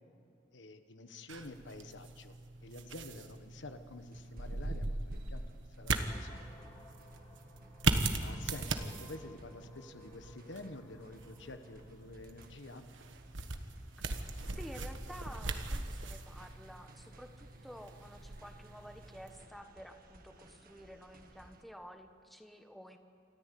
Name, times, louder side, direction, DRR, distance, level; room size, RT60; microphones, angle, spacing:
voice 1, 0.5-2.4 2.6-6.5 8.2-12.9, left 2 dB, 70° left, 8 dB, 1.3 m, -49 dB
sound 1, 1.3-19.4, right 3 dB, 85° right, 1.4 m, -39 dB
sound 2, 4.0-21.6, right 1 dB, 50° right, 1.6 m, -60 dB
sound 3, 6.1-15.0, left 1 dB, 20° left, 2.5 m, -60 dB
voice 2, 14.5-23.0, equal, ahead, 6 dB, 1.2 m, -51 dB
28.5 x 13.5 x 8.5 m, 2.5 s
head